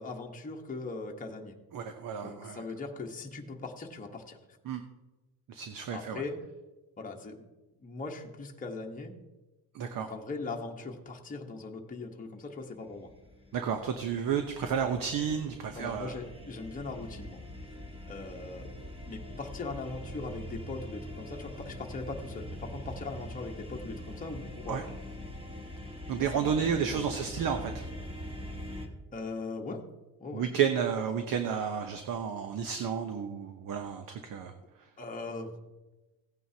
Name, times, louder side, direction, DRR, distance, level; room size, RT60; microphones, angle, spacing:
voice 1, 0.0-1.5 2.2-4.4 5.9-6.4 7.0-7.5 7.8-9.1 10.0-13.1 15.7-17.4 18.1-18.7 19.0-24.8 26.3-27.0 29.1-29.8 30.2-30.5 35.0-35.5, left 3 dB, 20° left, 1 dB, 1.1 m, -40 dB
voice 2, 1.7-2.6 4.7-4.8 5.5-6.2 9.7-10.1 13.5-16.2 24.7-24.8 26.1-27.8 30.3-34.5, right 7 dB, 55° right, 6 dB, 0.9 m, -31 dB
sound 1, 12.9-28.9, left 1 dB, 15° right, 1.5 m, -43 dB
16.5 x 9.2 x 2.8 m, 1.1 s
cardioid pair, 150°, 40 cm